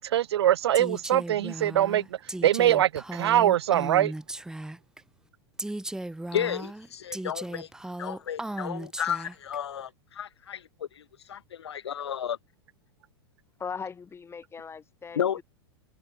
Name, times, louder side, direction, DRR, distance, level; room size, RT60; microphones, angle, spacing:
voice 1, 0.0-2.1 2.4-4.1, right 12 dB, 75° right, 0.6 m, -23 dB
Female speech woman speaking, 0.7-5.0 5.6-9.6, right 1 dB, 5° right, 3.8 m, -36 dB
voice 2, 6.3-7.7 8.0-12.4 15.2-15.4, left 9 dB, 85° left, 0.5 m, -32 dB
voice 3, 13.6-15.4, left 5 dB, 20° left, 4.8 m, -39 dB
hypercardioid pair, 100°, 14 cm